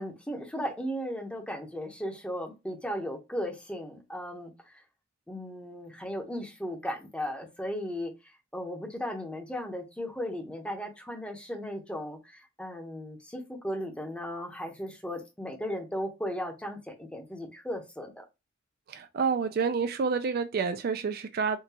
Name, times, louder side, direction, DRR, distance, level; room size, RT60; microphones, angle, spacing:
voice 1, 0.0-4.8 5.3-8.1 8.5-18.2, equal, 5° left, 0.7 m, -36 dB
voice 2, 18.9-21.6, right 5 dB, 50° right, 0.3 m, -28 dB
3.7 x 2.3 x 2.8 m
head